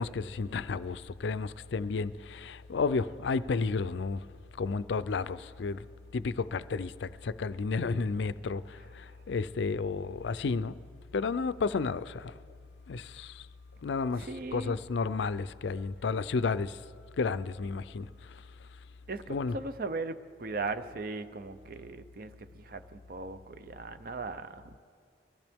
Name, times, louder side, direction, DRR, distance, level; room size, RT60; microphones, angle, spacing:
voice 1, 0.0-4.2 4.6-5.8 6.1-10.8 11.1-12.3 12.9-13.4 13.8-16.8 17.2-18.1 19.3-19.6, left 4 dB, 75° left, 0.4 m, -32 dB
voice 2, 14.2-14.8 19.1-22.3 22.6-24.8, right 3 dB, 50° right, 0.5 m, -38 dB
23.0 x 15.0 x 3.5 m
head